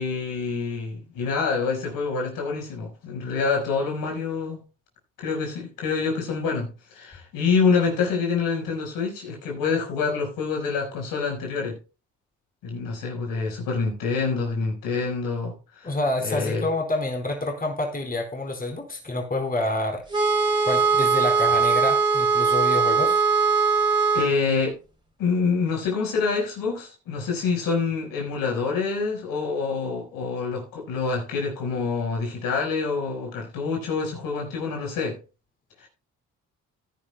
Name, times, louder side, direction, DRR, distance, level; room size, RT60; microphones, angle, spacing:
voice 1, 0.0-4.6 5.2-11.8 12.6-15.9 16.2-16.7 24.1-24.8 25.2-35.2 35.8-35.9, left 4 dB, 75° left, 4.7 m, -26 dB
voice 2, 15.8-20.0 20.7-23.2, left 2 dB, 25° left, 4.3 m, -28 dB
sound 1, 20.1-24.3, right 5 dB, 15° right, 3.4 m, -20 dB
16.0 x 10.5 x 2.2 m
supercardioid pair, 60°, 34 cm